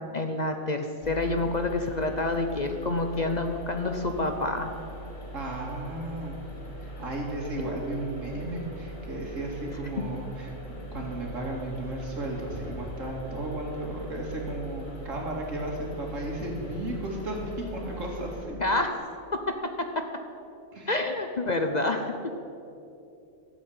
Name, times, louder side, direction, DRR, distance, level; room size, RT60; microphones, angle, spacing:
voice 1, 0.0-4.7 18.6-19.0 19.3-20.1 20.9-22.1, left 2 dB, 40° left, 5 dB, 0.7 m, -28 dB
sound 1, 1.0-18.4, equal, 80° left, 4.0 m, -41 dB
voice 2, 5.3-6.4 6.8-10.5 10.9-18.6 20.7-21.0, right 1 dB, 75° right, -1 dB, 2.6 m, -34 dB
13.5 x 7.3 x 8.5 m, 2.7 s
omnidirectional pair, 1.3 m